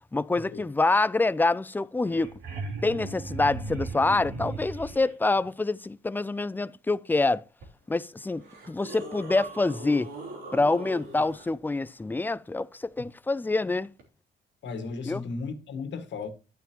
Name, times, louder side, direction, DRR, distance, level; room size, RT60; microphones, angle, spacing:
voice 1, 0.1-2.3 2.8-7.4 7.9-10.1 10.5-13.9 15.1-15.2, left 3 dB, 10° left, 0.4 m, -26 dB
sound 1, 1.7-1.8 2.0-5.1 7.6-7.7 8.4-11.5 14.0-14.1, right 3 dB, 85° right, 3.3 m, -38 dB
voice 2, 14.6-16.3, left 4 dB, 65° left, 1.9 m, -35 dB
11.5 x 9.1 x 3.0 m
cardioid pair, 90°, 20 cm